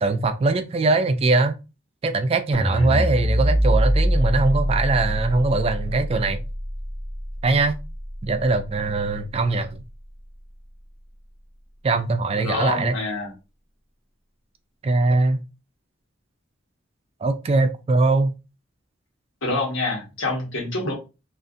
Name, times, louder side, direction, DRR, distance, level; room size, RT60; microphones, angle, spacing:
voice 1, 0.0-1.5 2.0-6.4 7.4-7.7 8.2-9.8 11.8-12.9 14.8-15.4 17.2-18.3, right 3 dB, 30° right, 0.3 m, -21 dB
sound 1, 2.5-8.8, equal, 55° left, 0.8 m, -24 dB
voice 2, 2.7-3.1 12.4-13.3 19.4-20.9, left 2 dB, 90° left, 1.3 m, -27 dB
2.5 x 2.4 x 2.5 m
head